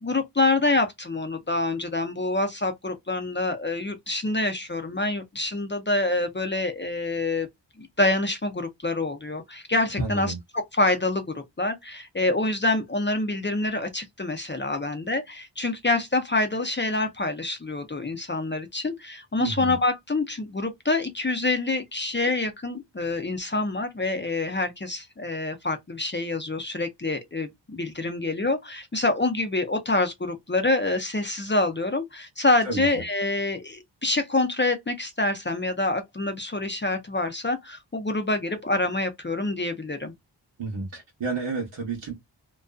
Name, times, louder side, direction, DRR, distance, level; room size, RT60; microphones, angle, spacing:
voice 1, 0.0-7.5 7.8-10.3 10.7-40.1, left 2 dB, 25° left, 0.5 m, -26 dB
voice 2, 10.0-10.4 19.4-19.8 32.6-32.9 40.6-42.1, right 4 dB, 80° right, 0.9 m, -31 dB
2.5 x 2.3 x 2.2 m
wide cardioid pair, 40°, 45 cm